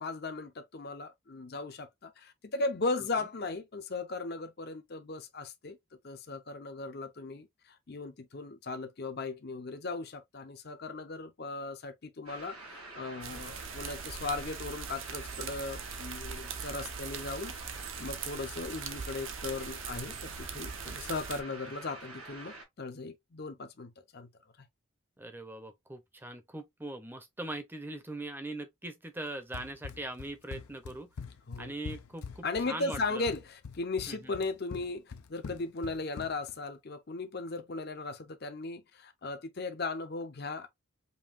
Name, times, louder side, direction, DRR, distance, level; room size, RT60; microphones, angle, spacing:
voice 1, 0.0-5.8 6.0-24.3 31.5-31.7 32.4-40.7, left 3 dB, 45° left, 0.6 m, -37 dB
sound 1, 12.3-22.6, right 2 dB, 85° right, 2.5 m, -47 dB
sound 2, 13.2-21.4, right 6 dB, 60° right, 0.7 m, -41 dB
voice 2, 25.2-31.1 31.6-33.3 34.1-34.3, right 2 dB, 10° right, 0.6 m, -41 dB
Run, 29.5-36.6, left 5 dB, 85° left, 0.6 m, -44 dB
5.4 x 2.7 x 2.5 m
head